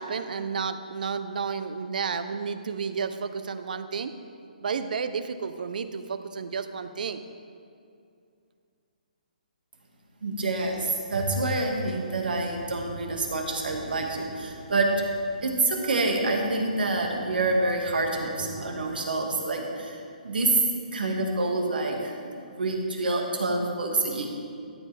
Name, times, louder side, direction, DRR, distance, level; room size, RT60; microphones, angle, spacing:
voice 1, 0.0-4.1 4.6-7.2, right 5 dB, 65° right, 11 dB, 0.6 m, -31 dB
voice 2, 10.2-15.0 15.4-20.6 20.9-24.3, right 2 dB, 85° right, 1 dB, 1.8 m, -27 dB
sound 1, 10.5-18.9, right 3 dB, 45° right, 1.2 m, -46 dB
13.0 x 7.6 x 3.4 m, 2.4 s
hypercardioid pair, 165°, 5 cm